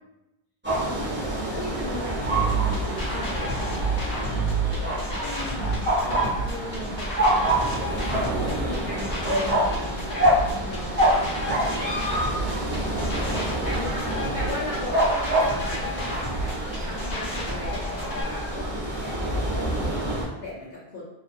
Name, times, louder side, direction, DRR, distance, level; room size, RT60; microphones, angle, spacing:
sound 1, 0.6-20.2, right 1 dB, 10° right, 0.7 m, -27 dB
voice 1, 0.8-3.8 5.2-5.8 6.4-7.6 8.2-12.2 13.0-14.1 14.3-21.0, left 2 dB, 60° left, -8 dB, 0.8 m, -38 dB
sound 2, 2.2-18.2, right 1 dB, 85° left, 1.2 m, -31 dB
voice 2, 4.1-6.4 6.7-7.0 11.3-11.9 12.3-13.7 14.4-14.5, equal, 35° left, -6 dB, 1.0 m, -42 dB
2.7 x 2.4 x 2.5 m, 0.91 s
omnidirectional pair, 1.1 m